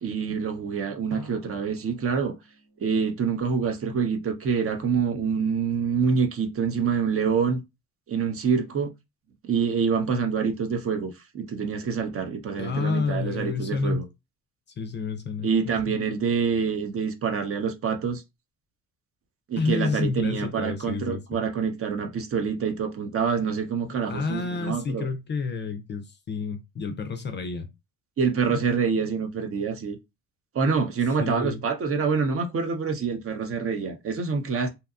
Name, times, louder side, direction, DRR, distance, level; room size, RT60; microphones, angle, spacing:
voice 1, 0.0-2.3 2.8-7.6 8.1-8.9 9.5-14.0 15.4-18.2 19.5-25.1 28.2-30.0 30.5-34.7, right 6 dB, 40° right, 0.7 m, -26 dB
Drum, 1.1-3.8, right 3 dB, 90° right, 1.5 m, -47 dB
voice 2, 12.6-14.1 14.8-16.0 19.6-21.4 24.0-27.7 28.5-28.6 31.2-31.6, left 4 dB, 35° left, 0.4 m, -30 dB
2.8 x 2.2 x 2.3 m
cardioid pair, 95°, 35 cm